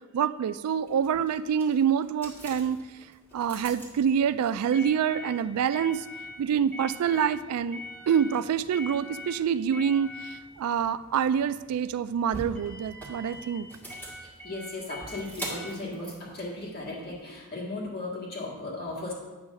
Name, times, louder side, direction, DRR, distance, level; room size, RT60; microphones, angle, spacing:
voice 1, 0.1-2.8 3.3-6.1 6.4-13.7, right 8 dB, 85° right, 16 dB, 0.3 m, -26 dB
sound 1, 0.8-17.2, equal, 10° left, 1.7 m, -43 dB
voice 2, 14.2-19.1, left 2 dB, 45° left, -4 dB, 1.9 m, -36 dB
8.8 x 3.1 x 6.3 m, 1.2 s
head